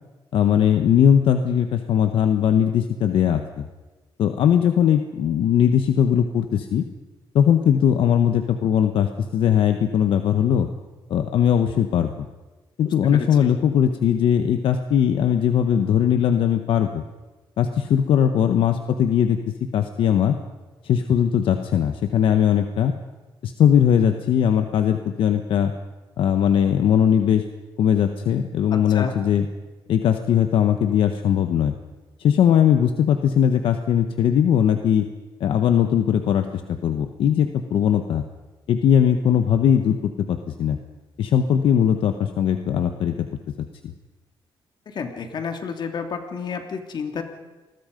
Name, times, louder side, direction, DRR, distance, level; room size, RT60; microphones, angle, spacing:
voice 1, 0.3-3.6 4.2-6.8 7.3-10.7 11.1-12.1 12.8-17.0 17.6-19.4 19.7-20.4 20.8-22.9 23.4-25.7 26.2-27.4 27.8-29.5 29.9-31.7 32.2-35.1 35.4-38.2 38.7-40.8 41.2-43.3, left 9 dB, 80° left, 7 dB, 1.2 m, -19 dB
voice 2, 12.8-13.3 28.7-29.1 44.9-47.2, left 5 dB, 55° left, 5 dB, 2.8 m, -30 dB
28.0 x 21.0 x 5.3 m, 1.2 s
cardioid pair, 125°, 9 cm